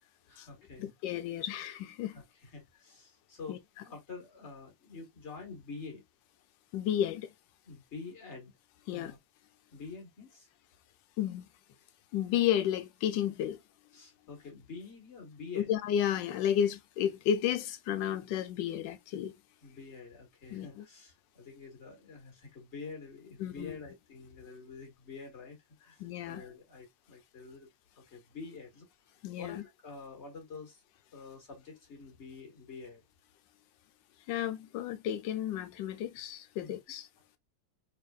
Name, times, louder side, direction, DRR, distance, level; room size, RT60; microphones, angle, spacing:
voice 1, 0.3-0.9 2.1-6.0 7.6-8.6 8.9-9.2 9.7-10.5 13.9-15.8 19.6-27.7 28.0-28.9 29.4-30.8 31.1-33.0 36.6-36.7, left 4 dB, 40° left, 1.9 m, -47 dB
voice 2, 0.8-2.2 3.5-3.6 6.7-7.3 8.9-9.1 11.2-11.4 12.1-13.6 15.7-19.3 20.5-20.8 23.4-23.8 26.0-26.4 29.2-29.6 34.3-37.1, left 10 dB, 80° left, 1.3 m, -32 dB
4.2 x 3.4 x 2.4 m
omnidirectional pair, 2.0 m